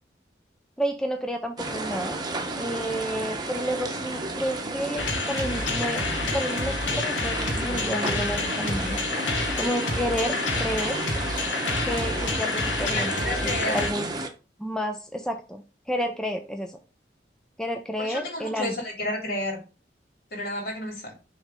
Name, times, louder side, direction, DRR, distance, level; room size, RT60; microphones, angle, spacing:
voice 1, 0.8-2.2 2.6-6.0 6.3-9.0 9.6-11.2 11.9-13.1 13.4-14.1 14.6-16.8 17.6-18.7, equal, 5° left, 4 dB, 0.5 m, -30 dB
sound 1, 1.6-14.3, right 2 dB, 25° right, 0.9 m, -32 dB
sound 2, 5.0-13.9, left 3 dB, 85° left, 1.3 m, -29 dB
voice 2, 12.9-13.9 18.0-19.6 20.3-21.1, left 1 dB, 55° left, 0 dB, 3.0 m, -31 dB
6.4 x 3.3 x 5.1 m, 0.33 s
head